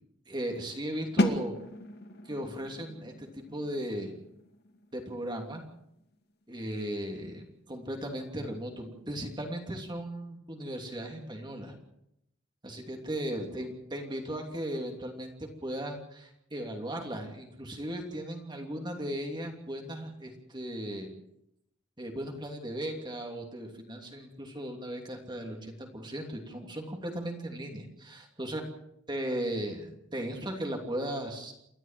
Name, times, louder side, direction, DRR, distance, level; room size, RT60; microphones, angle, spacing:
voice 1, 0.3-1.5 2.3-4.1 4.9-5.6 6.5-11.8 12.6-21.1 22.0-28.6 29.1-31.5, right 1 dB, 25° right, 2 dB, 2.9 m, -37 dB
sound 1, 1.2-6.9, left 1 dB, 55° left, 2.4 m, -35 dB
29.0 x 12.5 x 7.5 m, 0.78 s
head